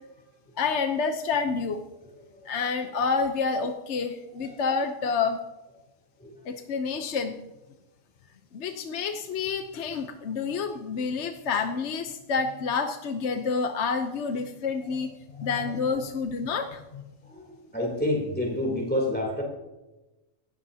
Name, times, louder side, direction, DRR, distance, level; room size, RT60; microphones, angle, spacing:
voice 1, 0.6-1.8 2.5-5.4 6.4-7.4 8.5-17.0, left 5 dB, 60° left, 5 dB, 1.1 m, -28 dB
voice 2, 17.2-19.4, left 1 dB, 5° left, 0 dB, 3.2 m, -29 dB
17.5 x 16.0 x 2.8 m, 1.0 s
omnidirectional pair, 1.4 m